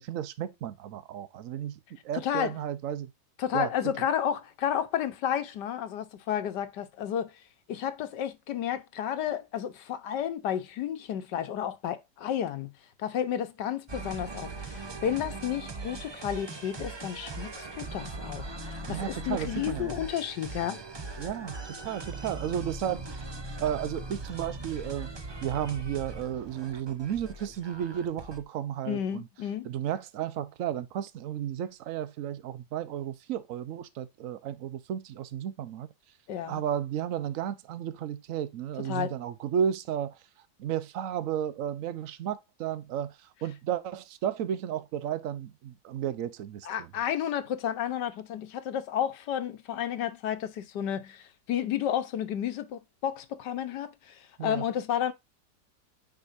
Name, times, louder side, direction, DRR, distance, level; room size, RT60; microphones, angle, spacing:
voice 1, 0.0-3.1 3.5-3.7 18.9-19.9 21.2-23.1 23.6-25.1 25.4-29.3 29.6-35.9 36.5-40.2 40.6-46.9 54.4-54.6, right 10 dB, 60° right, 1.0 m, -33 dB
voice 2, 2.1-2.5 3.4-7.3 7.7-12.7 13.0-20.8 28.9-29.7 36.3-36.6 38.9-39.1 46.6-55.1, left 10 dB, 75° left, 1.5 m, -32 dB
sound 1, 13.9-28.4, right 2 dB, 30° right, 0.4 m, -40 dB
9.1 x 4.8 x 2.6 m
omnidirectional pair, 1.9 m